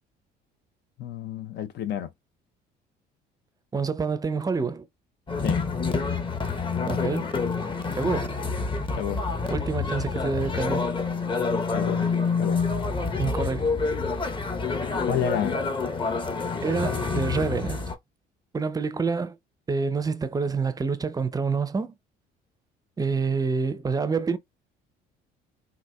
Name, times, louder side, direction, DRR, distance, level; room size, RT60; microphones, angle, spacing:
voice 1, 1.0-2.1 5.4-5.6 8.9-9.2 11.7-12.1 12.4-12.6 15.0-15.6, left 9 dB, 60° left, 0.6 m, -30 dB
voice 2, 3.7-4.9 6.8-7.4 8.0-8.4 9.5-10.9 13.2-13.7 16.6-17.9 18.5-19.4 19.7-21.9 23.0-24.4, right 4 dB, 20° right, 0.5 m, -27 dB
sound 1, 5.3-17.9, left 4 dB, 25° left, 0.8 m, -27 dB
4.1 x 2.6 x 2.2 m
supercardioid pair, 80°, 20 cm